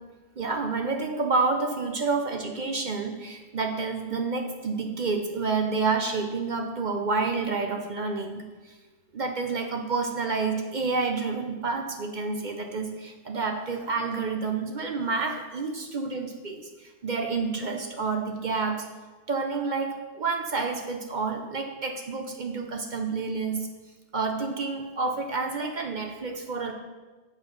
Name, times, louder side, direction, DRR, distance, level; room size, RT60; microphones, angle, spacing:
voice 1, 0.4-8.4 9.1-18.9 19.3-23.7 24.1-26.7, right 4 dB, 45° right, 3 dB, 0.7 m, -29 dB
6.9 x 6.4 x 5.3 m, 1.3 s
omnidirectional pair, 1.3 m